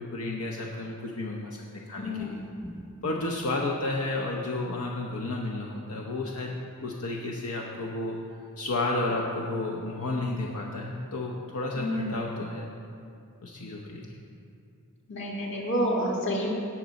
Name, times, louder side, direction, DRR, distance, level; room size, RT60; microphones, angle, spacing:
voice 1, 0.0-1.6 1.9-2.4 3.0-6.6 6.8-8.2 8.6-12.7 13.4-14.1, left 2 dB, 85° left, -1 dB, 0.8 m, -32 dB
voice 2, 2.0-2.7 11.8-12.1 15.1-16.5, equal, 55° left, -2 dB, 1.9 m, -29 dB
17.5 x 6.0 x 4.0 m, 2.5 s
head